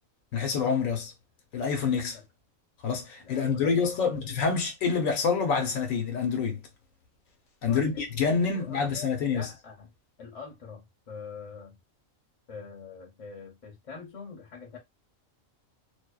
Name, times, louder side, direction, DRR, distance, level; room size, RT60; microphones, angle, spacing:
voice 1, 0.3-1.1 1.5-2.2 2.8-6.6 7.6-9.5, left 5 dB, 75° left, 1.1 m, -27 dB
voice 2, 3.2-4.3 7.6-9.9 10.2-11.8 12.5-14.8, left 5 dB, 35° left, 0.6 m, -44 dB
2.6 x 2.1 x 2.2 m
omnidirectional pair, 1.4 m